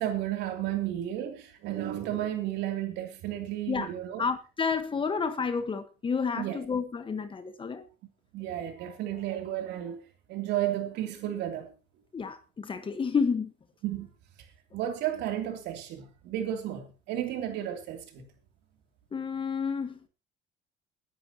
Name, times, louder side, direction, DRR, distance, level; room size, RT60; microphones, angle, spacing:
voice 1, 0.0-4.2 6.4-6.6 8.3-10.0 10.3-11.7 13.8-14.1 14.7-18.2, right 12 dB, 85° right, 3.1 m, -33 dB
voice 2, 4.2-7.8 12.1-13.5 19.1-20.0, left 5 dB, 30° left, 1.4 m, -30 dB
21.5 x 10.5 x 3.0 m
cardioid pair, 110°, 17 cm